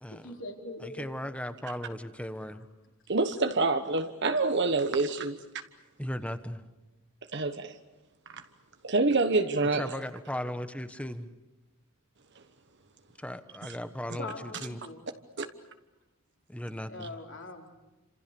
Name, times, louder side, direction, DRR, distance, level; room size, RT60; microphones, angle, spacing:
voice 1, 0.1-1.1 14.2-15.1 16.9-17.7, left 2 dB, 60° left, 2 dB, 4.3 m, -42 dB
voice 2, 0.8-2.7 6.0-6.6 9.8-11.3 13.2-14.8 16.5-17.2, equal, 5° left, 10 dB, 1.2 m, -37 dB
voice 3, 3.1-5.4 7.3-7.8 8.3-8.4 8.8-10.0 13.6-13.8 15.4-15.5, right 3 dB, 55° right, 7 dB, 1.2 m, -27 dB
30.0 x 27.0 x 7.0 m, 1.1 s
head